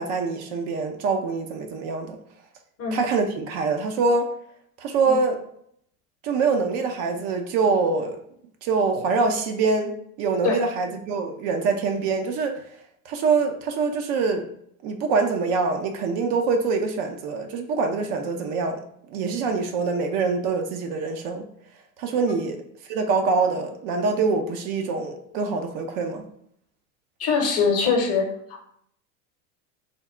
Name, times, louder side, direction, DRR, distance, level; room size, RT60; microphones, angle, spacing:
voice 1, 0.0-2.2 2.9-4.3 4.8-5.4 6.2-8.2 8.6-12.6 13.0-14.5 14.8-18.8 19.1-21.5 22.0-22.6 22.9-26.3, right 4 dB, 55° right, 5 dB, 0.7 m, -24 dB
voice 2, 27.2-28.2, left 5 dB, 30° left, 2 dB, 0.9 m, -22 dB
3.6 x 2.0 x 3.6 m, 0.68 s
hypercardioid pair, 95°, 46 cm